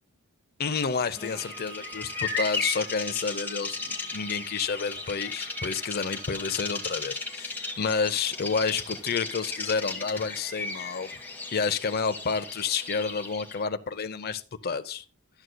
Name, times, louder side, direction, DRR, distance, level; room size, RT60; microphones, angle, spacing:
voice 1, 0.6-11.1 11.5-15.0, left 5 dB, 45° left, 0.6 m, -30 dB
Bird vocalization bird call bird song, 0.9-13.6, left 3 dB, 10° left, 1.3 m, -35 dB
Bowed string instrument, 1.1-7.2, right 9 dB, 70° right, 4.5 m, -49 dB
12.5 x 7.9 x 2.2 m
head